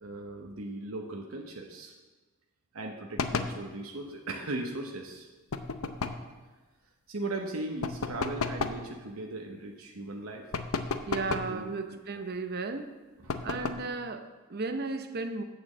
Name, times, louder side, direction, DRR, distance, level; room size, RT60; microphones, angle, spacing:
voice 1, 0.0-1.9 2.7-5.3 7.1-10.5 11.3-12.0 13.2-13.4, right 2 dB, 90° right, 2 dB, 1.0 m, -38 dB
sound 1, 3.2-3.6 5.5-6.3 7.8-8.9 10.5-11.6 13.3-13.9, left 4 dB, 85° left, 0.7 m, -33 dB
voice 2, 11.1-12.9 13.4-15.4, right 3 dB, 50° right, 9 dB, 0.7 m, -35 dB
8.8 x 6.9 x 7.4 m, 1.3 s
head